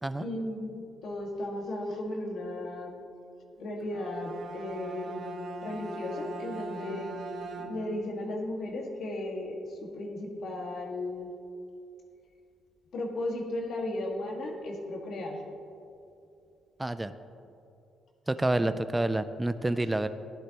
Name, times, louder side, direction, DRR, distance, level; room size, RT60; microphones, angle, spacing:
voice 1, 0.2-3.0 3.6-5.3 5.6-7.1 7.6-11.3 12.9-15.4 18.6-18.7 19.6-19.8, left 1 dB, 65° left, 0 dB, 1.8 m, -35 dB
Bowed string instrument, 3.8-8.1, right 2 dB, 65° right, 1.1 m, -40 dB
voice 2, 16.8-17.1 18.3-20.1, right 1 dB, 10° right, 11 dB, 0.4 m, -28 dB
15.0 x 11.0 x 3.0 m, 2.6 s
cardioid pair, 90°, 0 cm